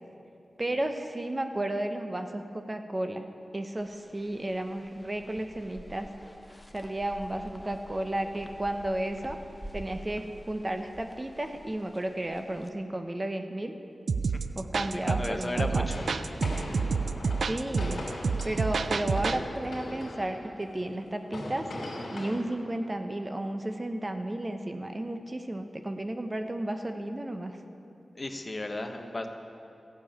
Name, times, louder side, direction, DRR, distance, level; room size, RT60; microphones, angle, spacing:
voice 1, 0.6-6.1 6.7-9.4 9.7-13.7 14.5-16.0 17.5-18.0 18.4-21.7 22.1-27.5, right 1 dB, 30° right, 6 dB, 0.9 m, -33 dB
sound 1, 3.7-12.7, equal, 10° left, 0.9 m, -48 dB
sound 2, 14.1-19.4, right 5 dB, 80° right, 0.4 m, -29 dB
voice 2, 15.1-15.9 28.1-29.3, left 2 dB, 35° left, 5 dB, 1.0 m, -34 dB
sound 3, 15.9-22.4, left 1 dB, 70° left, 2.8 m, -39 dB
14.5 x 7.1 x 9.0 m, 2.8 s
cardioid pair, 60°, 0 cm